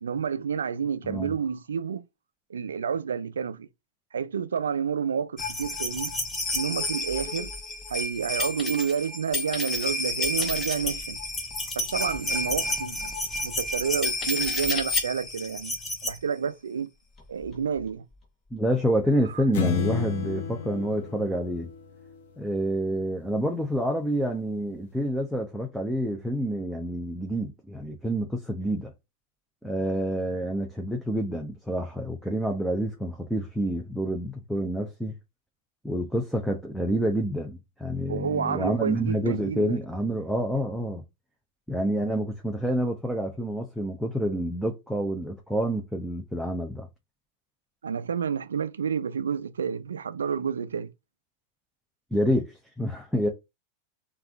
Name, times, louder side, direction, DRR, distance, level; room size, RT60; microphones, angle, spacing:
voice 1, 0.0-2.0 2.5-3.7 4.1-6.1 6.5-7.5 7.9-11.2 11.8-13.1 13.4-15.7 16.0-16.9 17.3-18.0 19.3-19.4 38.1-39.8 47.8-50.9, right 7 dB, 70° right, 0.4 m, -29 dB
sound 1, 5.4-16.2 17.2-17.3 17.5-17.6, left 2 dB, 20° left, 1.1 m, -30 dB
voice 2, 18.5-21.7 22.4-28.9 29.6-35.1 35.8-41.0 41.7-46.9 52.1-53.3, equal, ahead, 0.7 m, -28 dB
sound 2, 19.5-22.2, left 7 dB, 55° left, 0.7 m, -30 dB
3.5 x 2.4 x 3.4 m
figure-of-eight pair, 90°, 0 cm